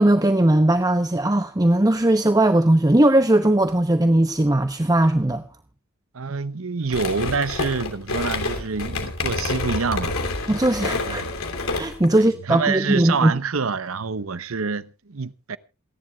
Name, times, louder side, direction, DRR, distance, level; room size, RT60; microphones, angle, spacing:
voice 1, 0.0-5.4 10.5-11.2 11.7-13.3, right 1 dB, 20° right, 0.9 m, -18 dB
voice 2, 6.1-10.2 10.9-11.3 12.1-15.6, right 5 dB, 75° right, 0.9 m, -27 dB
sound 1, 6.9-12.1, left 3 dB, 85° left, 3.0 m, -28 dB
27.5 x 11.0 x 2.4 m
head